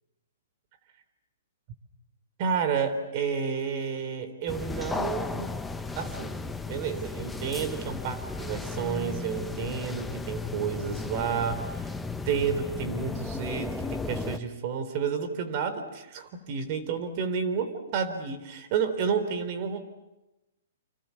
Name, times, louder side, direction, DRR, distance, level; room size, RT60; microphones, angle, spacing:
voice 1, 2.4-5.5 6.0-6.3 6.6-11.7 12.3-19.8, right 6 dB, 40° right, 10 dB, 3.8 m, -30 dB
sound 1, 4.5-14.4, left 3 dB, 5° left, 1.1 m, -35 dB
29.5 x 26.0 x 7.2 m, 0.98 s
hypercardioid pair, 135°, 0 cm